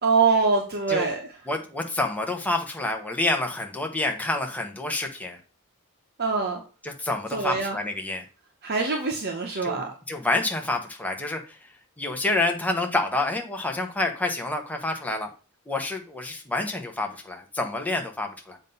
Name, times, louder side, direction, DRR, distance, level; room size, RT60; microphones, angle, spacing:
voice 1, 0.0-1.3 6.2-6.6 7.3-7.8 8.6-9.9, right 4 dB, 45° right, 2 dB, 0.8 m, -24 dB
voice 2, 1.5-5.4 6.8-8.2 9.6-11.6 12.0-15.3 15.7-18.6, left 2 dB, 5° left, 3 dB, 0.8 m, -28 dB
7.4 x 2.6 x 5.3 m, 0.35 s
head